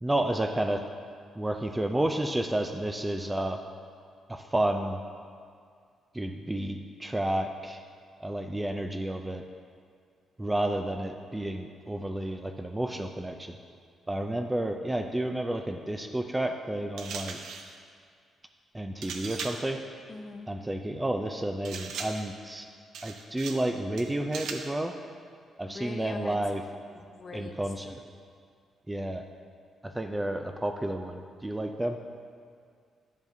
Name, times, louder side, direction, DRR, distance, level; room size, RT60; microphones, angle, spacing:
voice 1, 0.0-0.9 1.4-3.6 4.3-5.0 6.1-7.8 8.2-9.4 10.4-13.6 14.1-17.4 18.7-19.8 20.5-22.7 23.0-24.9 25.6-26.6 27.3-28.0 28.9-29.3 29.8-32.0, right 1 dB, 10° right, 5 dB, 0.4 m, -31 dB
sound 1, 17.0-17.7 19.0-19.7 21.6-22.3 22.9-23.7 24.0-24.7, right 5 dB, 85° right, 0.6 m, -39 dB
voice 2, 20.1-20.5 25.7-26.4 26.9-27.5, left 3 dB, 35° left, 4 dB, 0.7 m, -41 dB
10.5 x 7.3 x 2.7 m, 2.1 s
cardioid pair, 120°, 0 cm